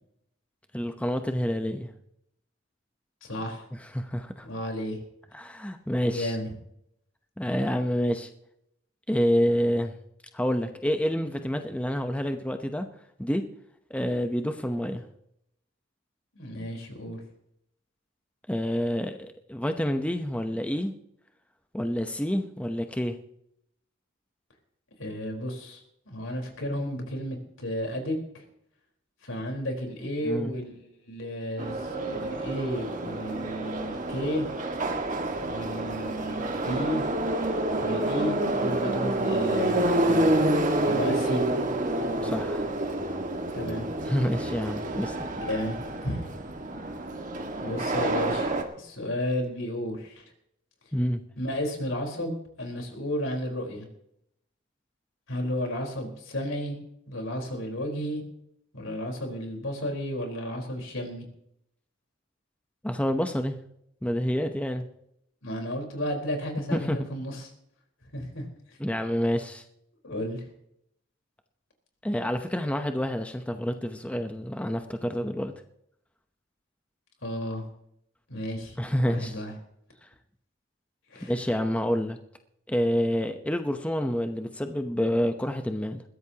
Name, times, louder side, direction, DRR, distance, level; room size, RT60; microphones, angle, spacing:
voice 1, 0.7-1.9 3.8-4.5 5.3-6.4 7.4-8.3 9.1-9.9 10.3-12.9 13.2-13.4 13.9-15.1 18.5-20.9 21.7-23.2 30.2-30.5 42.2-42.7 44.1-45.2 50.9-51.2 62.8-63.6 64.0-64.9 66.7-67.0 68.8-69.6 72.0-75.5 78.8-79.4 80.0-80.1 81.2-82.2 82.7-86.0, equal, 5° left, 6 dB, 0.8 m, -28 dB
voice 2, 3.2-3.7 4.4-5.0 6.1-6.5 16.3-17.2 25.0-25.8 26.1-28.4 29.2-30.8 31.1-34.5 35.4-37.0 37.8-40.4 40.8-41.5 43.5-43.9 45.3-46.3 47.6-48.5 48.7-50.2 51.4-53.9 55.3-56.8 57.1-58.2 58.7-61.3 65.4-67.5 68.1-68.8 70.0-70.4 77.2-77.6 78.3-78.8 79.0-79.5 81.1-81.3, equal, 85° left, 2 dB, 4.4 m, -33 dB
Subway metro underground, 31.6-48.6, right 1 dB, 40° right, 1.8 m, -28 dB
21.0 x 15.5 x 2.9 m, 0.74 s
head